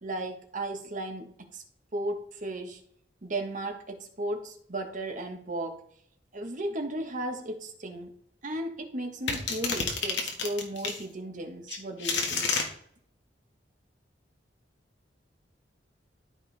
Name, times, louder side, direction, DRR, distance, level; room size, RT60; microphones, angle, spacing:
voice 1, 0.0-1.6 1.9-2.8 3.2-5.8 6.3-8.1 8.4-12.5, right 1 dB, 45° right, 4 dB, 1.5 m, -35 dB
sound 1, 9.3-11.0 11.7-12.7, left 5 dB, 75° left, 1.8 m, -29 dB
13.5 x 4.6 x 3.5 m, 0.64 s
head